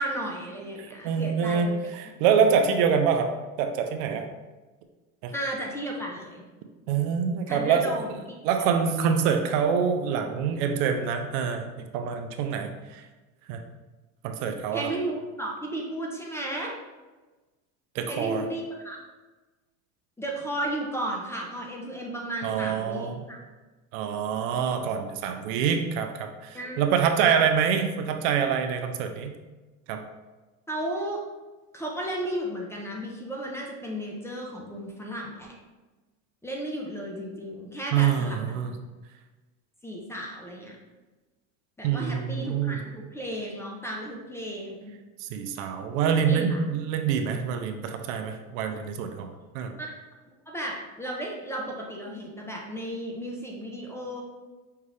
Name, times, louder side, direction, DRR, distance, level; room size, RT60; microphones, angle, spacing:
voice 1, 0.0-1.8 5.3-6.4 7.5-8.1 14.7-16.7 18.1-19.0 20.2-23.4 26.5-26.8 30.7-31.2 31.7-35.5 36.4-38.6 39.8-40.8 41.8-44.9 46.2-46.6 49.8-49.9 50.5-54.2, right 1 dB, 5° left, -1 dB, 0.6 m, -34 dB
voice 2, 1.0-1.7 1.9-3.3 3.6-4.2 5.2-5.3 6.9-8.0 8.4-13.0 13.5-13.6 14.2-14.9 17.9-18.4 22.4-23.2 23.9-29.3 29.9-30.0 37.9-38.7 41.8-42.8 45.2-49.7, right 7 dB, 65° right, 5 dB, 0.6 m, -26 dB
5.5 x 2.3 x 3.3 m, 1.2 s
supercardioid pair, 115°, 42 cm